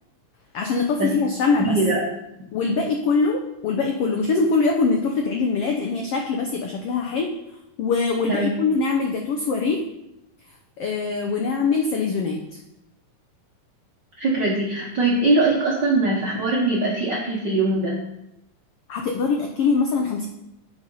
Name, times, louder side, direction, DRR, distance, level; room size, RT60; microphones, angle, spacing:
voice 1, 0.5-1.8 2.5-7.3 7.8-9.8 10.8-12.6 18.9-20.3, left 4 dB, 85° left, 3 dB, 1.3 m, -23 dB
voice 2, 1.6-2.0 8.3-8.5 14.2-17.9, right 2 dB, 70° right, -3 dB, 1.0 m, -21 dB
8.0 x 5.3 x 5.4 m, 0.87 s
omnidirectional pair, 3.6 m